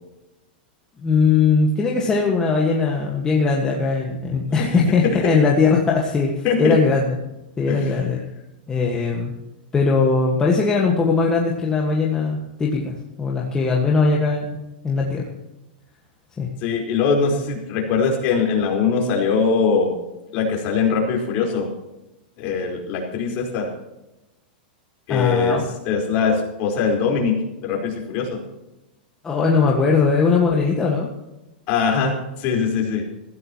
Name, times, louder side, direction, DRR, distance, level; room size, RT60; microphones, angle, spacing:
voice 1, 1.0-7.1 7.6-8.2 8.7-9.3 9.7-14.5 14.8-15.2 16.4-16.5 25.1-25.6 29.2-31.1, left 4 dB, 15° left, -2 dB, 1.7 m, -20 dB
voice 2, 4.6-5.4 6.4-6.8 7.7-8.0 16.6-19.9 20.3-21.7 22.4-23.7 25.1-25.6 25.8-28.4 31.7-33.0, left 5 dB, 35° left, 0 dB, 4.6 m, -22 dB
20.0 x 15.0 x 3.1 m, 0.96 s
supercardioid pair, 160°, 5 cm